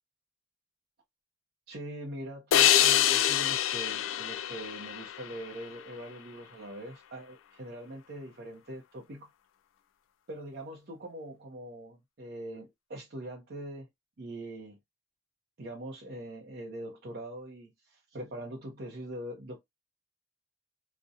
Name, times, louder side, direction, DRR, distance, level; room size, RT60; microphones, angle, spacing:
voice 1, 1.7-9.3 10.3-13.9 14.2-14.8 15.6-19.6, right 1 dB, 55° right, 0.6 m, -42 dB
sound 1, 2.5-5.8, left 11 dB, 80° left, 0.3 m, -25 dB
2.7 x 2.0 x 2.3 m
head